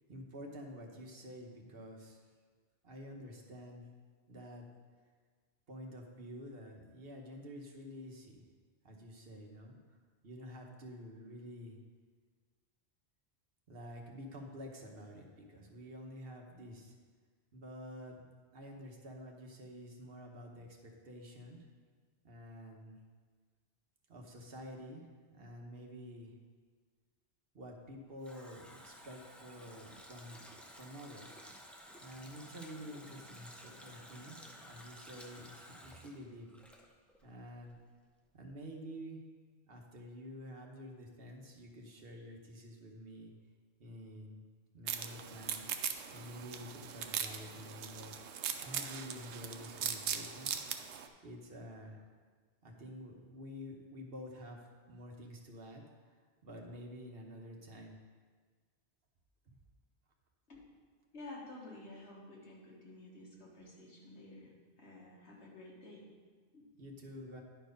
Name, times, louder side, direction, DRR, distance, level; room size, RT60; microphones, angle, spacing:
voice 1, 0.1-2.3 2.8-3.9 4.3-4.7 5.7-8.4 8.8-10.0 10.2-11.8 13.7-16.9 17.5-18.2 18.5-21.7 22.2-23.0 24.1-26.3 27.5-30.4 30.8-31.5 32.0-36.5 37.2-37.8 38.3-39.3 39.7-43.3 43.8-44.5 44.7-50.6 51.2-52.0 52.6-54.6 54.9-58.0 59.5-59.6 66.8-67.4, equal, 60° right, 1 dB, 1.3 m, -49 dB
Water tap faucet, 27.7-37.4 37.6-37.7, equal, ahead, 0.5 m, -54 dB
sound 1, 44.9-51.1, right 8 dB, 85° right, 0.9 m, -40 dB
voice 2, 61.1-64.5 64.8-66.0 66.5-66.7, left 2 dB, 80° left, -3 dB, 1.9 m, -51 dB
10.5 x 4.6 x 5.2 m, 1.5 s
omnidirectional pair, 1.1 m